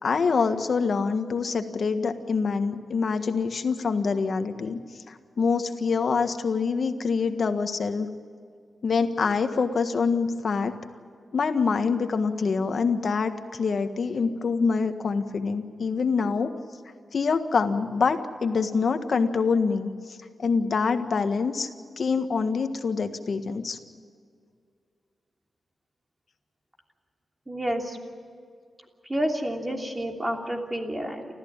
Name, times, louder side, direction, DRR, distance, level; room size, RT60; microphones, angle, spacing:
voice 1, 0.0-4.8 5.1-8.1 8.8-10.7 11.3-16.5 17.1-19.9 20.4-21.7 22.0-23.8, left 5 dB, 60° left, 8 dB, 1.6 m, -25 dB
voice 2, 27.5-28.0 29.1-31.3, right 1 dB, 15° right, 2 dB, 3.1 m, -29 dB
29.5 x 14.0 x 8.9 m, 2.2 s
wide cardioid pair, 105°, 0 cm